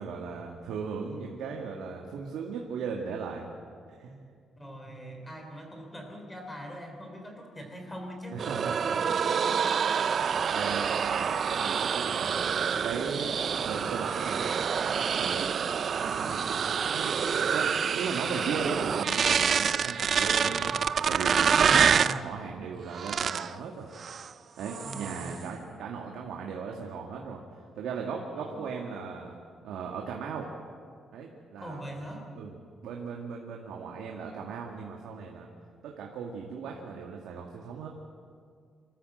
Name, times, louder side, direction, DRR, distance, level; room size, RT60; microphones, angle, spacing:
voice 1, 0.0-3.5 4.0-4.3 8.3-8.7 9.4-9.5 10.5-12.5 12.8-14.7 15.2-15.5 15.9-16.4 16.9-17.2 17.5-20.8 21.1-23.9 24.2-27.4 27.8-29.4 29.6-30.5 31.1-31.8 32.4-32.5 32.8-35.5 35.8-37.9, right 5 dB, 85° right, 0 dB, 2.0 m, -37 dB
voice 2, 4.6-8.5 8.9-10.1 11.1-11.4 21.6-22.1 24.8-25.3 28.3-28.9 31.6-32.3, right 1 dB, 10° left, 3 dB, 3.3 m, -42 dB
sound 1, 8.4-22.2 22.9-23.5 24.0-24.3 24.6-25.4, right 7 dB, 40° right, 0.4 m, -27 dB
25.5 x 13.5 x 7.9 m, 2.2 s
cardioid pair, 175°, 0 cm